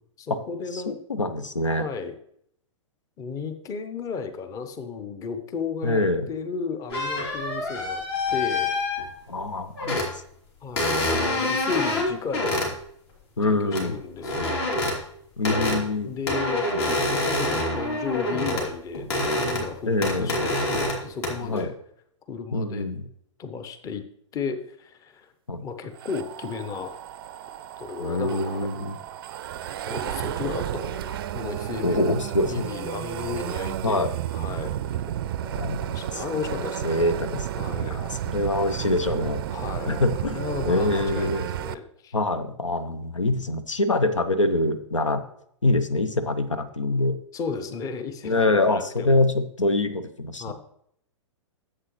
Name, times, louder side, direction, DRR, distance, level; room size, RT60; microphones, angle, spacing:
voice 1, 0.2-1.0 1.7-2.2 3.2-8.0 8.3-8.7 10.6-12.7 13.4-14.6 16.0-21.7 22.3-22.9 23.4-24.0 24.3-25.3 25.6-26.9 27.8-28.8 29.9-34.7 35.9-37.0 37.5-38.0 39.5-42.2 47.3-49.2 50.4-50.5, left 5 dB, 20° left, 9 dB, 0.9 m, -34 dB
voice 2, 0.7-1.9 5.8-6.3 9.3-10.2 13.4-14.0 15.4-16.1 19.9-20.3 21.4-21.7 22.5-23.1 25.5-25.6 28.0-29.0 31.8-32.7 33.8-34.1 35.5-36.2 36.6-37.5 37.8-39.4 39.9-41.4 42.1-45.2 45.6-47.2 48.2-50.5, left 2 dB, 80° left, 11 dB, 0.8 m, -25 dB
sound 1, 6.9-9.3 9.8-10.2 10.8-12.7 13.7-13.8 14.2-15.0 15.4-15.8 16.3-18.7 18.9-19.7 20.0-21.0 21.2-21.6, left 2 dB, 55° left, 2.9 m, -26 dB
sound 2, 25.9-41.8, right 11 dB, 50° right, 0.5 m, -32 dB
11.0 x 7.7 x 3.1 m, 0.70 s
figure-of-eight pair, 105°, 16 cm